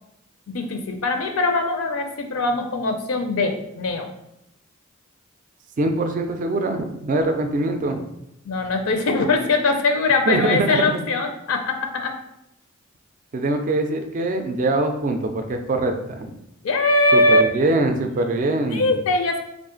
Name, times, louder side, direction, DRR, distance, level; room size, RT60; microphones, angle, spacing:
voice 1, 0.5-4.1 8.5-12.2 16.6-17.5 18.7-19.4, left 2 dB, 80° left, 5 dB, 0.5 m, -21 dB
voice 2, 5.8-8.0 10.3-11.0 13.3-16.4 17.1-18.9, right 2 dB, 40° right, 5 dB, 0.3 m, -23 dB
3.6 x 2.4 x 3.7 m, 0.82 s
head